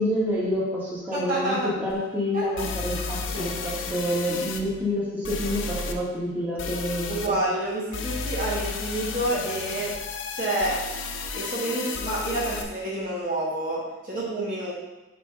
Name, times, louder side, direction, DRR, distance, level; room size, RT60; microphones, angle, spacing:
voice 1, 0.0-7.2, left 1 dB, 10° right, -9 dB, 1.8 m, -28 dB
voice 2, 1.1-1.7 2.3-2.7 2.9-3.5 7.1-9.9 10.3-10.8 11.3-14.7, right 1 dB, 45° right, -7 dB, 1.6 m, -29 dB
sound 1, 1.9-2.0 2.6-4.6 5.2-5.9 6.6-7.3 7.9-12.6, left 4 dB, 75° left, 0.6 m, -33 dB
5.0 x 4.4 x 5.3 m, 1.1 s
head